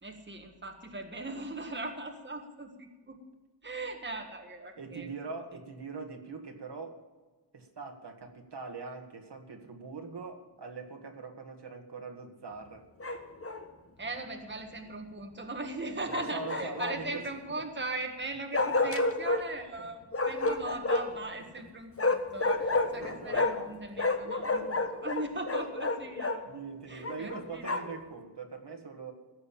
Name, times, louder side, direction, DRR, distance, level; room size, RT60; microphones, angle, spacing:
voice 1, 0.0-3.2 3.6-5.1 14.0-26.5 26.9-27.6, right 2 dB, 25° right, 3 dB, 1.6 m, -39 dB
voice 2, 4.8-7.0 7.5-12.8 15.9-17.2 19.8-19.9 21.5-21.6 23.0-23.4 26.4-29.1, right 4 dB, 65° right, 3 dB, 2.0 m, -42 dB
Bark, 13.0-13.6 16.1-17.2 18.5-19.4 20.1-21.2 22.0-23.7 24.0-26.4 27.0-28.0, left 2 dB, 30° left, 1.2 m, -30 dB
16.5 x 6.8 x 8.6 m, 1.3 s
wide cardioid pair, 95°, 44 cm